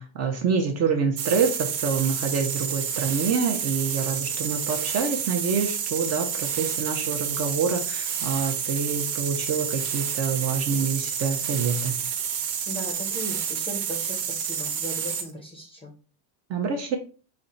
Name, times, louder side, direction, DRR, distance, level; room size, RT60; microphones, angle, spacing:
voice 1, 0.0-12.0 16.5-17.0, right 5 dB, 35° right, 4 dB, 0.5 m, -26 dB
sound 1, 1.2-15.3, right 8 dB, 70° right, 0.9 m, -29 dB
voice 2, 12.7-15.9, right 1 dB, 10° left, 1 dB, 0.5 m, -37 dB
4.2 x 2.1 x 3.7 m, 0.36 s
cardioid pair, 150°, 48 cm